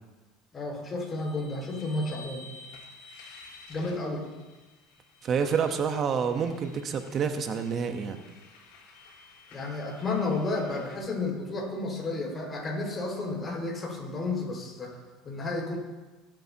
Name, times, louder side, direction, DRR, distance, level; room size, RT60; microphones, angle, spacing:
voice 1, 0.5-2.5 3.7-4.3 9.5-15.0 15.3-15.8, left 2 dB, 25° left, -2 dB, 5.1 m, -32 dB
sound 1, 1.0-11.0, left 3 dB, 80° left, 4.3 m, -51 dB
voice 2, 5.2-8.2, right 6 dB, 40° right, 6 dB, 1.1 m, -28 dB
23.5 x 8.9 x 2.9 m, 1.2 s
supercardioid pair, 110°, 0 cm